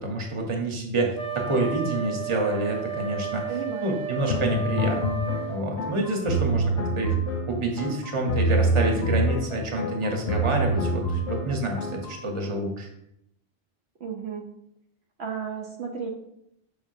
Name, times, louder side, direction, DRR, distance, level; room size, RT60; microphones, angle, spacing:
voice 1, 0.0-3.4 3.8-5.2 5.5-7.2 7.5-12.9, right 2 dB, 30° right, 1 dB, 1.0 m, -28 dB
Wind instrument woodwind instrument, 1.1-5.6, right 7 dB, 5° left, 1.0 m, -33 dB
voice 2, 3.5-4.0 14.0-14.5 15.2-16.1, right 6 dB, 70° right, 1 dB, 1.0 m, -33 dB
sound 1, 4.3-12.2, right 1 dB, 75° left, 1.0 m, -26 dB
6.9 x 5.8 x 2.7 m, 0.77 s
omnidirectional pair, 1.2 m